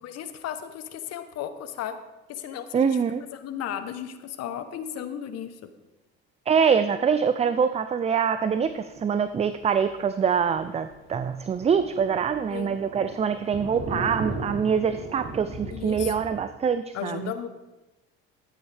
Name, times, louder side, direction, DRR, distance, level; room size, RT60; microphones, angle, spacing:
voice 1, 0.0-2.0 2.3-3.0 3.3-5.7 12.5-12.8 15.7-16.1 16.9-17.5, left 9 dB, 60° left, 10 dB, 1.1 m, -35 dB
voice 2, 2.7-3.2 6.5-17.3, right 6 dB, 20° right, 11 dB, 0.4 m, -24 dB
Thunder, 9.1-9.3 9.7-9.8 10.1-10.2 10.6-10.7 10.9-16.1, right 2 dB, 40° right, 2.3 m, -37 dB
13.5 x 8.4 x 3.5 m, 1.0 s
supercardioid pair, 90°, 29 cm